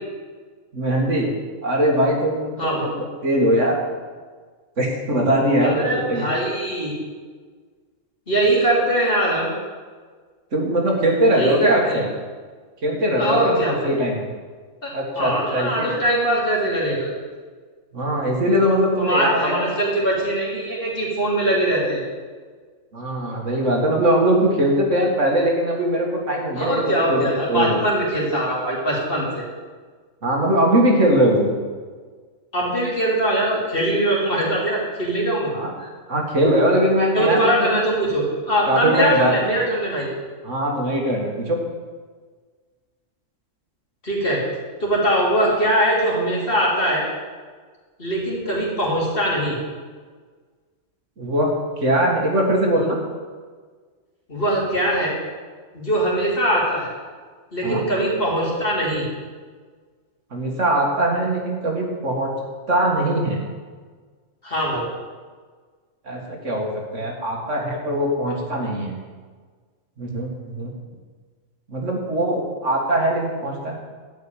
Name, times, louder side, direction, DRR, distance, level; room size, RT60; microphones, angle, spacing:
voice 1, 0.7-1.3 1.6-3.8 4.8-6.3 10.5-12.1 12.8-14.3 14.9-15.9 17.9-19.7 22.9-26.8 27.1-27.8 30.2-31.5 35.5-35.7 36.1-37.7 38.7-39.3 40.4-41.6 51.2-51.5 51.8-53.0 57.6-57.8 60.3-62.3 62.7-63.4 66.1-68.9 70.0-70.7 71.7-73.8, right 1 dB, 65° right, 0 dB, 2.3 m, -21 dB
voice 2, 5.6-6.9 8.3-9.6 11.3-12.0 13.2-13.9 14.8-17.1 19.0-22.0 26.6-29.4 32.5-35.5 35.8-35.9 37.1-40.1 44.0-44.4 44.8-47.0 48.0-49.6 54.3-55.2 55.7-56.9 57.5-59.0 64.4-64.9, right 1 dB, 45° left, -4 dB, 3.5 m, -21 dB
12.0 x 5.9 x 9.0 m, 1.5 s
omnidirectional pair, 1.4 m